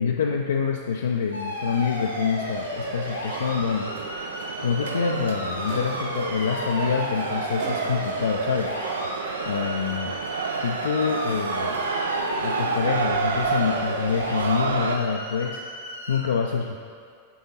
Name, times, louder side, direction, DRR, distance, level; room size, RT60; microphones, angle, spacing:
voice 1, 0.0-3.9 4.6-8.7 9.1-10.2 10.6-11.9 12.4-15.6 16.1-16.8, left 6 dB, 65° left, 1 dB, 0.3 m, -26 dB
sound 1, 1.3-16.2, left 1 dB, 85° left, 1.0 m, -34 dB
sound 2, 1.4-15.0, right 5 dB, 65° right, 0.4 m, -30 dB
sound 3, 5.7-6.2 7.6-8.2, right 4 dB, 45° right, 1.0 m, -40 dB
8.5 x 3.8 x 4.1 m, 2.2 s
figure-of-eight pair, 90°, 0 cm